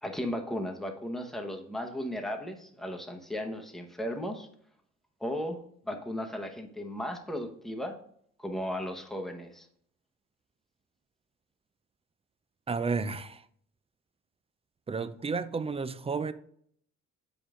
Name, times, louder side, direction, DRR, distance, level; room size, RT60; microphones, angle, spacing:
voice 1, 0.0-4.5 5.2-8.0 8.4-9.7, equal, ahead, 0.9 m, -36 dB
voice 2, 12.7-13.5 14.9-16.3, right 4 dB, 20° right, 0.4 m, -32 dB
7.3 x 5.2 x 3.7 m
cardioid pair, 90°, 30 cm